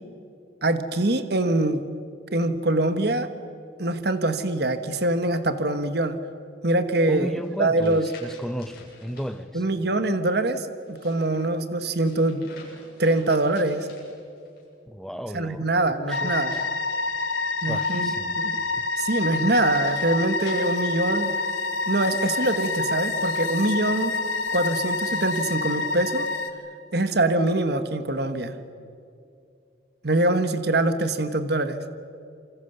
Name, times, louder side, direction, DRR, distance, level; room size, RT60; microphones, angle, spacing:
voice 1, 0.6-1.8 2.3-3.3 3.8-6.2 6.6-8.1 9.5-12.5 13.0-13.9 15.3-16.6 17.6-18.6 19.0-21.3 21.9-24.2 24.5-26.3 26.9-28.5 30.0-31.8, right 2 dB, 55° right, 10 dB, 1.4 m, -24 dB
voice 2, 7.1-9.6 14.9-15.7 16.1-16.7 17.7-18.4 18.8-18.9, equal, ahead, 11 dB, 0.8 m, -34 dB
sound 1, 7.3-9.3 10.8-14.7 16.0-17.4 19.2-21.6 22.4-23.4, left 3 dB, 50° left, 7.7 m, -50 dB
sound 2, 16.1-26.5, left 3 dB, 90° left, 1.9 m, -27 dB
28.0 x 25.5 x 6.9 m, 2.5 s
head